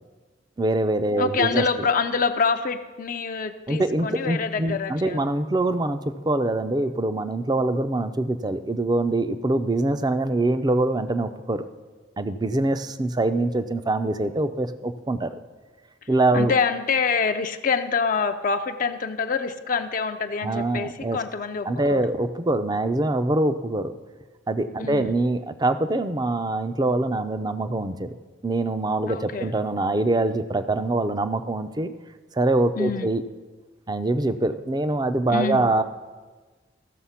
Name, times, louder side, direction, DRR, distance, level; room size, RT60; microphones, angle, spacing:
voice 1, 0.6-1.6 3.7-11.6 12.2-15.4 16.1-16.5 20.4-21.2 21.6-23.9 24.5-28.1 28.4-31.9 32.3-33.2 33.9-35.8, right 2 dB, 20° right, 10 dB, 0.5 m, -24 dB
voice 2, 1.2-5.2 16.3-22.0 24.8-25.1 29.1-29.5 32.8-33.1 35.3-35.7, left 5 dB, 45° left, 7 dB, 0.5 m, -26 dB
14.0 x 6.7 x 5.7 m, 1.4 s
head